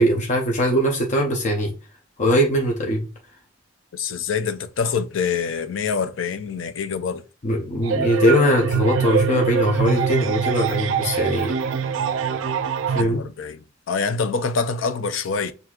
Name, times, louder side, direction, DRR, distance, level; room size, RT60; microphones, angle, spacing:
voice 1, 0.0-1.7 2.2-3.1 7.4-11.5 12.9-13.3, equal, 40° left, 0.7 m, -20 dB
voice 2, 3.9-7.2 13.0-15.5, left 5 dB, 80° left, 0.5 m, -25 dB
sound 1, 7.8-13.0, right 6 dB, 75° right, 0.4 m, -24 dB
6.0 x 2.7 x 2.4 m
head